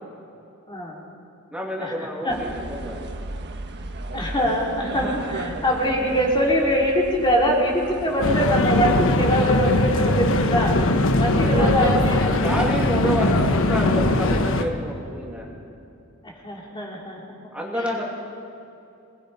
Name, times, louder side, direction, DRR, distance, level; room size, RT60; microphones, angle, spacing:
voice 1, 0.7-1.0 1.8-1.9 2.2-2.4 4.1-12.2 16.2-17.2, equal, 20° left, -2 dB, 3.3 m, -23 dB
voice 2, 1.5-3.0 11.3-15.5 17.5-18.0, equal, 5° right, -3 dB, 2.9 m, -28 dB
sound 1, 2.3-14.7, right 2 dB, 55° right, 1.4 m, -36 dB
sound 2, 8.2-14.6, left 2 dB, 65° left, 1.2 m, -20 dB
27.5 x 20.0 x 5.6 m, 2.7 s
head